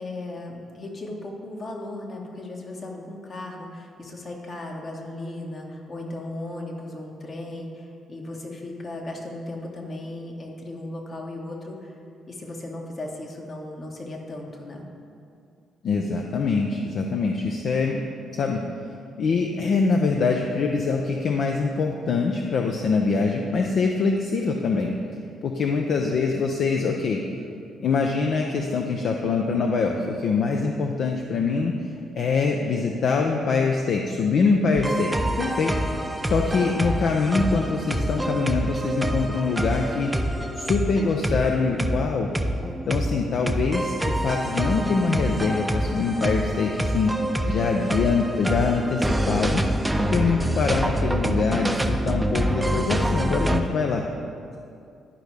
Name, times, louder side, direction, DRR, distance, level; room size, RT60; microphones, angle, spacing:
voice 1, 0.0-12.0 12.3-14.8, left 1 dB, 45° left, 0 dB, 1.3 m, -36 dB
voice 2, 15.8-18.0 18.3-18.6 19.2-24.9 25.4-27.2 27.8-31.7 32.2-35.7 36.2-40.1 40.6-42.3 42.9-47.1 47.4-49.6 50.1-54.0, left 4 dB, 60° left, 2 dB, 0.5 m, -24 dB
sound 1, 34.8-53.6, right 1 dB, 10° right, 0.5 m, -26 dB
11.5 x 5.3 x 3.3 m, 2.4 s
hypercardioid pair, 45°, 0 cm